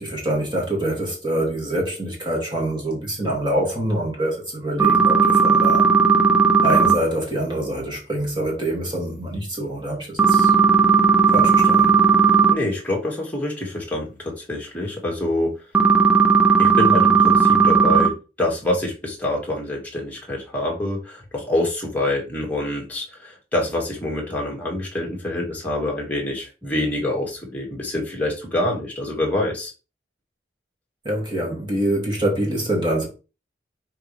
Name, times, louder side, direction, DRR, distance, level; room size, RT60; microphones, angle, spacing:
voice 1, 0.0-5.9 6.6-10.5 11.3-12.0 31.0-33.1, right 1 dB, 25° right, 2.6 m, -25 dB
sound 1, 4.8-6.9 10.2-12.5 15.7-18.1, right 5 dB, 5° right, 0.8 m, -15 dB
voice 2, 12.5-15.5 16.6-29.7, left 1 dB, 10° left, 2.2 m, -26 dB
6.4 x 4.3 x 3.4 m
head